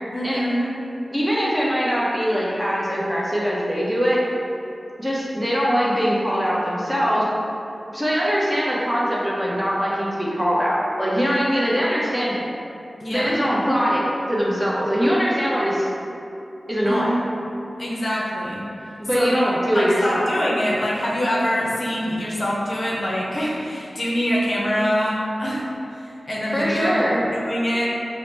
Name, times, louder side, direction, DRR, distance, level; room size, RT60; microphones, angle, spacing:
voice 1, 0.1-0.8 13.0-13.4 16.8-17.1 17.8-18.6 19.1-19.4 19.7-25.6 25.9-27.9, equal, 60° left, -5 dB, 0.6 m, -24 dB
voice 2, 1.1-4.2 5.0-7.3 7.9-12.5 13.1-15.9 16.7-17.1 19.0-20.2 26.5-27.2, equal, 5° right, -6 dB, 0.9 m, -22 dB
4.5 x 2.1 x 3.3 m, 2.7 s
cardioid pair, 50°, 0 cm